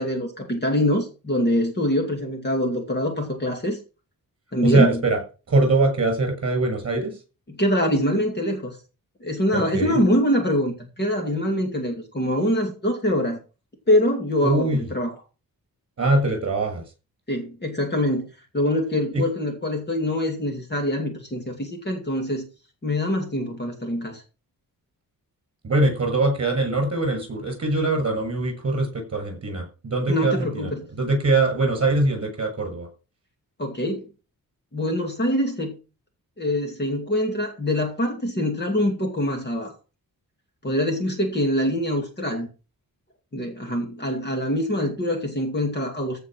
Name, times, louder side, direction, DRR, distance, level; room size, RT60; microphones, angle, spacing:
voice 1, 0.0-3.8 4.5-5.0 7.5-8.8 9.2-13.4 13.9-15.1 17.3-18.2 18.5-22.5 22.8-24.2 30.1-30.9 33.6-34.1 34.7-35.8 36.4-39.7 40.6-42.5 43.3-46.2, left 1 dB, 30° left, 2.4 m, -24 dB
voice 2, 4.6-5.2 5.5-7.2 9.5-10.0 14.4-14.9 16.0-16.8 19.1-19.2 25.6-32.9, right 2 dB, 45° right, 6.7 m, -22 dB
15.0 x 5.3 x 6.2 m
wide cardioid pair, 180°, 36 cm